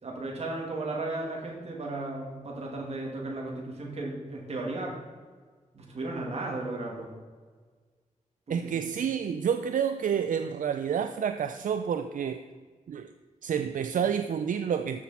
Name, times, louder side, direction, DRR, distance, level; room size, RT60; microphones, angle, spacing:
voice 1, 0.0-5.0 5.7-7.1 8.5-8.8, right 2 dB, 50° right, -1 dB, 2.2 m, -35 dB
voice 2, 8.5-12.4 12.9-13.1 13.4-15.0, right 7 dB, 80° right, 9 dB, 0.4 m, -29 dB
13.0 x 6.2 x 4.2 m, 1.5 s
wide cardioid pair, 175°, 13 cm